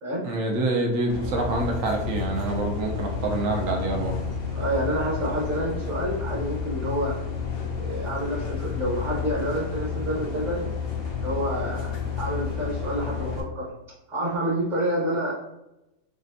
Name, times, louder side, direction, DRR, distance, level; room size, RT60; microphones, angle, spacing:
voice 1, 0.2-4.1, right 2 dB, 65° right, 1 dB, 1.1 m, -26 dB
sound 1, 1.1-13.4, left 6 dB, 65° left, 0.6 m, -31 dB
voice 2, 4.5-7.1 7.8-10.7 11.2-11.9 12.1-13.7 14.1-15.3, equal, 35° right, -6 dB, 0.9 m, -28 dB
3.4 x 3.0 x 2.6 m, 0.91 s
omnidirectional pair, 1.6 m